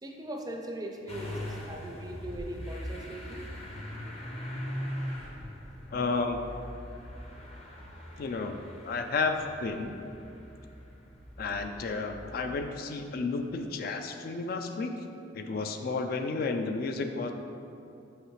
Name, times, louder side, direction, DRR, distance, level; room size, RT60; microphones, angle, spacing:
voice 1, 0.0-3.4, right 1 dB, 20° right, 2 dB, 0.5 m, -40 dB
Motor vehicle (road) / Engine starting, 1.1-12.7, equal, 35° left, 0.7 m, -41 dB
voice 2, 5.9-6.4 8.2-8.6 8.8-9.9 11.4-15.0 15.3-17.3, left 4 dB, 55° left, 6 dB, 0.3 m, -32 dB
6.4 x 4.8 x 3.1 m, 2.8 s
head